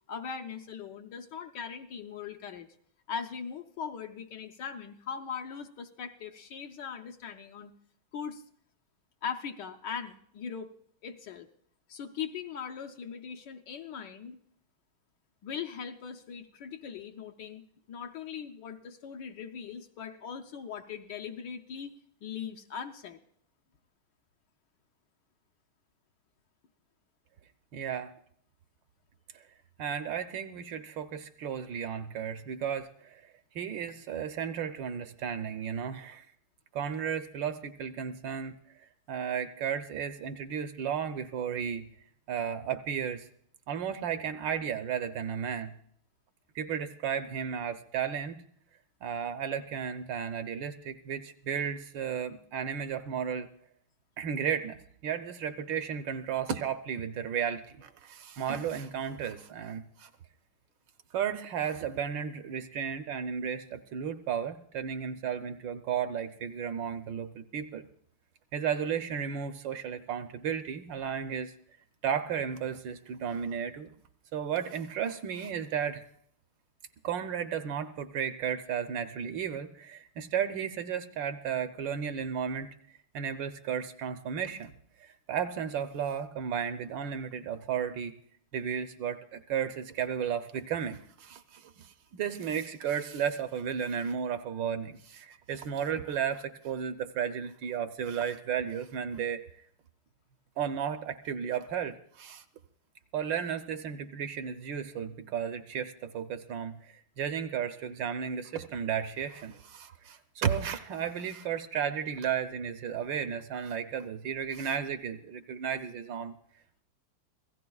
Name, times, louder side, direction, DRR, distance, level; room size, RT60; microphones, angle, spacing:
voice 1, 0.1-2.7 3.1-7.7 8.1-8.4 9.2-10.7 11.0-11.5 11.9-14.4 15.4-23.2, left 7 dB, 65° left, 4 dB, 1.2 m, -40 dB
voice 2, 27.7-28.1 29.3-29.4 29.8-33.2 33.5-36.3 36.7-41.9 42.3-43.3 43.7-45.7 46.5-48.4 49.0-53.5 54.2-60.1 61.1-67.9 68.5-71.5 72.0-73.9 74.3-76.0 77.0-82.7 83.1-84.7 85.0-88.1 88.5-99.5 100.6-102.4 103.1-116.3, right 8 dB, 70° right, 9 dB, 1.3 m, -34 dB
26.5 x 16.5 x 2.3 m, 0.65 s
omnidirectional pair, 2.2 m